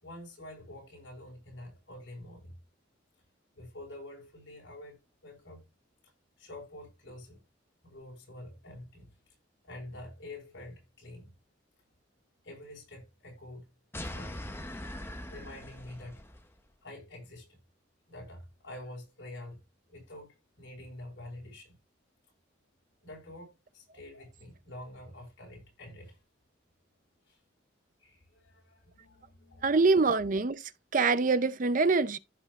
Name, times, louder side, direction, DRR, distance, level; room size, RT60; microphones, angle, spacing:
voice 1, 0.0-2.6 3.5-5.7 6.4-7.4 7.8-9.1 9.6-11.3 12.4-13.7 14.0-14.6 14.8-14.9 15.3-16.2 16.8-17.6 18.1-19.6 19.9-21.8 23.0-26.2 27.3-27.4 28.0-29.8, left 1 dB, 70° left, 4.7 m, -47 dB
sound 1, 13.9-16.5, left 1 dB, 10° left, 0.8 m, -41 dB
voice 2, 29.6-32.2, right 4 dB, 40° right, 0.5 m, -25 dB
15.0 x 5.3 x 2.4 m
head